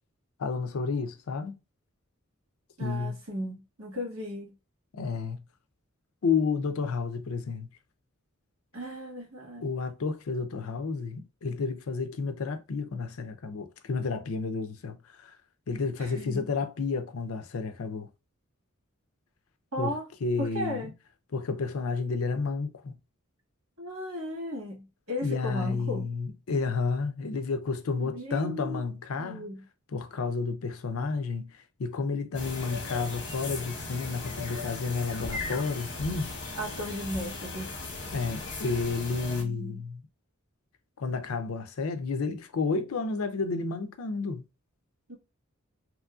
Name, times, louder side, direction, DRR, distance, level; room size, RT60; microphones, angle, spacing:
voice 1, 0.4-1.5 2.8-3.2 4.9-5.4 6.2-7.7 9.6-15.3 15.7-18.1 19.8-20.9 21.3-23.0 25.2-29.5 29.9-36.3 38.1-40.0 41.0-44.4, left 4 dB, 80° left, 0.5 m, -31 dB
voice 2, 2.8-4.5 8.7-9.7 16.0-16.5 19.7-20.0 20.4-20.9 23.8-26.1 28.0-28.8 29.1-29.6 36.6-37.8 39.4-39.8 45.1-45.2, equal, 85° right, 1.6 m, -36 dB
sound 1, 32.3-39.4, left 3 dB, 60° left, 1.1 m, -37 dB
3.0 x 2.6 x 2.3 m
head